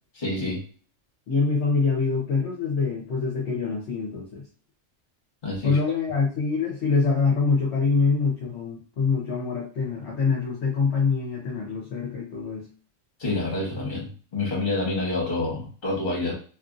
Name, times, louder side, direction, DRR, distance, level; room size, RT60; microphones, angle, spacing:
voice 1, 0.2-0.6 5.4-5.8 13.2-16.3, left 2 dB, 40° left, -3 dB, 1.3 m, -28 dB
voice 2, 1.3-4.4 5.6-12.7, left 4 dB, 60° left, -3 dB, 1.0 m, -25 dB
2.9 x 2.5 x 2.5 m, 0.41 s
omnidirectional pair, 1.4 m